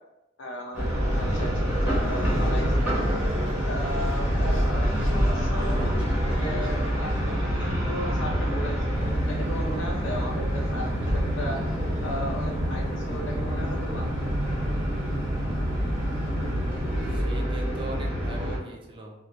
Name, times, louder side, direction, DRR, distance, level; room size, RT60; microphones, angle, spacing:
voice 1, 0.4-3.0 3.6-5.8 6.2-11.6 12.0-14.1, equal, 90° left, 0 dB, 0.6 m, -36 dB
Ambience sound at the London Stone, 0.7-18.6, equal, 10° right, 0.9 m, -27 dB
sound 1, 8.9-17.2, equal, 80° right, 0.5 m, -33 dB
voice 2, 17.1-19.1, right 2 dB, 25° right, 0 dB, 0.4 m, -39 dB
2.9 x 2.0 x 2.4 m, 0.91 s
head